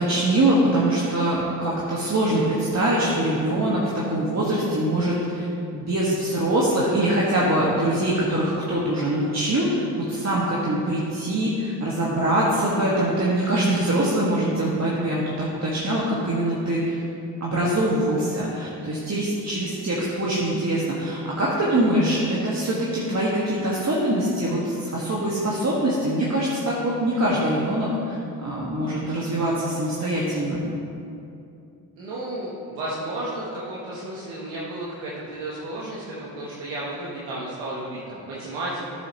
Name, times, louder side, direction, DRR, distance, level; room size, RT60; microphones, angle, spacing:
voice 1, 0.0-5.4 5.7-17.0 17.4-30.6, right 1 dB, 35° right, -6 dB, 1.8 m, -23 dB
voice 2, 32.0-39.0, right 1 dB, 85° right, -7 dB, 1.2 m, -33 dB
11.5 x 7.9 x 3.0 m, 2.6 s
hypercardioid pair, 45°, 44 cm